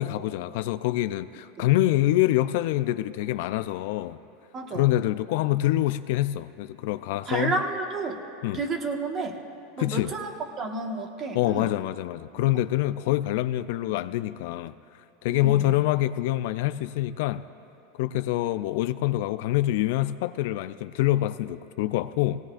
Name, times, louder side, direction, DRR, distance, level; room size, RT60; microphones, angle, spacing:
voice 1, 0.0-4.2 4.7-7.6 8.4-8.6 9.8-10.1 11.3-14.7 15.2-17.4 18.0-22.4, left 15 dB, 70° left, 13 dB, 0.4 m, -25 dB
voice 2, 4.5-4.9 7.2-8.2 8.5-9.4 9.8-11.7 12.4-12.5 15.3-15.7, right 3 dB, 35° right, 3 dB, 1.4 m, -31 dB
18.5 x 17.0 x 2.5 m, 2.6 s
supercardioid pair, 125°, 0 cm